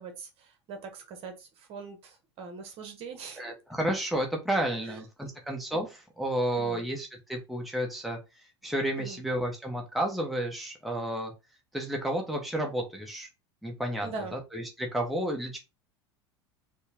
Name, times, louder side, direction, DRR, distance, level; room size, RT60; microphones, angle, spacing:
voice 1, 0.0-3.4 4.8-5.0 6.6-6.8 9.0-9.2 14.0-14.4, right 4 dB, 40° right, 5 dB, 1.2 m, -42 dB
voice 2, 3.4-8.2 8.6-11.3 11.7-13.3 13.6-15.6, right 1 dB, ahead, 0 dB, 1.0 m, -31 dB
4.3 x 2.3 x 3.4 m, 0.26 s
figure-of-eight pair, 75°, 15 cm